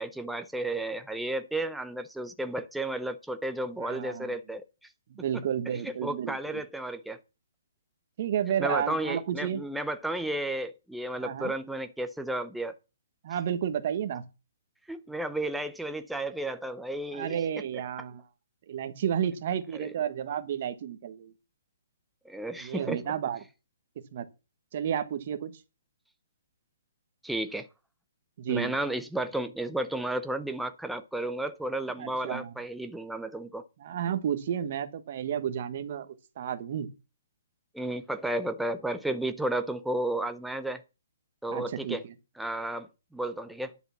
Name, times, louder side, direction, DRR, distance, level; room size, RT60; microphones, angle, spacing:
voice 1, 0.0-4.6 5.7-7.2 8.6-12.8 14.9-17.4 19.7-19.9 22.2-23.0 27.2-27.7 28.5-33.6 37.7-40.8 41.4-42.0 42.4-43.7, right 1 dB, ahead, 0.6 m, -33 dB
voice 2, 3.8-4.3 5.1-6.6 8.2-9.6 11.2-11.5 13.2-14.2 17.1-18.2 18.7-21.3 22.6-23.4 24.1-24.3 24.7-25.5 28.4-28.7 32.0-32.5 33.8-36.1 36.4-36.9 41.5-42.1, right 9 dB, 40° right, 1.4 m, -31 dB
10.5 x 6.8 x 7.1 m
hypercardioid pair, 170°, 0 cm